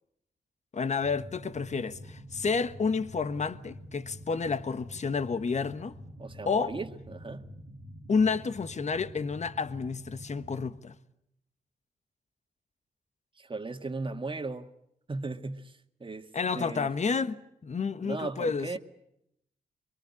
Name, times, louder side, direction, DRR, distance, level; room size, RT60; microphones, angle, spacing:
voice 1, 0.7-5.9 6.4-6.7 8.1-10.9 16.3-17.4 17.6-18.8, left 5 dB, 45° left, 1.4 m, -30 dB
sound 1, 1.0-10.8, equal, 75° right, 2.3 m, -47 dB
voice 2, 6.2-7.5 13.4-14.7 15.1-16.3 16.5-16.9 18.0-18.8, right 3 dB, 35° right, 1.9 m, -37 dB
23.5 x 23.5 x 8.5 m
cardioid pair, 70°, 16 cm